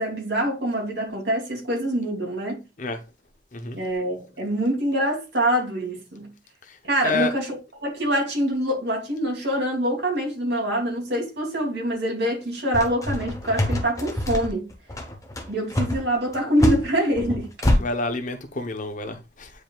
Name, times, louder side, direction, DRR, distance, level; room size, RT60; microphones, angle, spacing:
voice 1, 0.0-2.6 3.7-6.3 6.8-14.7 15.5-17.5, right 1 dB, 70° right, 2.9 m, -25 dB
sound 1, 12.7-17.8, left 1 dB, 20° left, 1.0 m, -25 dB
voice 2, 17.8-19.5, left 3 dB, 45° left, 0.8 m, -28 dB
9.0 x 4.9 x 2.4 m
head